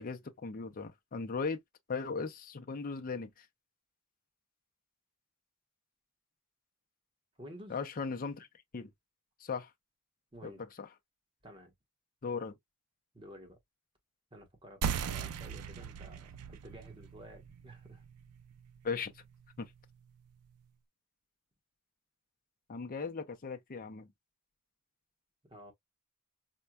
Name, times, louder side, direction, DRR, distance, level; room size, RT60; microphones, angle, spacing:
voice 1, 0.0-1.6 1.9-3.4 7.7-8.5 8.7-8.9 9.4-9.7 10.4-10.5 10.8-10.9 12.2-12.5 18.8-19.1 19.6-19.7 22.7-24.1, left 4 dB, 40° left, 0.5 m, -37 dB
voice 2, 7.4-7.8 10.3-10.6 11.4-11.7 13.1-13.6 14.3-18.0 25.5-25.7, equal, 25° right, 1.0 m, -52 dB
sound 1, 14.8-19.9, right 7 dB, 90° right, 0.4 m, -40 dB
4.4 x 2.2 x 2.2 m
head